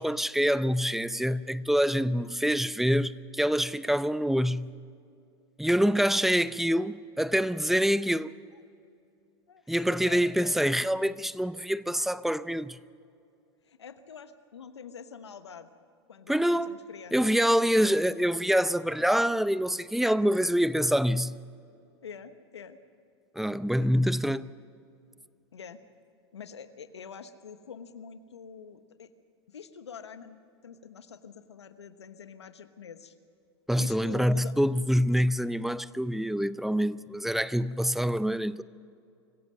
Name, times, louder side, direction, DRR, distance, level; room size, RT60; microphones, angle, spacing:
voice 1, 0.0-4.7 5.6-8.3 9.7-12.8 16.3-16.8 17.1-21.4 23.4-24.5 33.7-38.6, equal, ahead, 0.5 m, -26 dB
voice 2, 9.5-10.7 13.6-15.7 16.1-18.0 20.2-20.3 22.0-22.8 23.8-23.9 25.5-25.8 26.3-29.1 29.5-33.1 33.8-34.6, left 6 dB, 85° left, 1.2 m, -46 dB
25.0 x 16.0 x 6.4 m
hypercardioid pair, 95°, 14 cm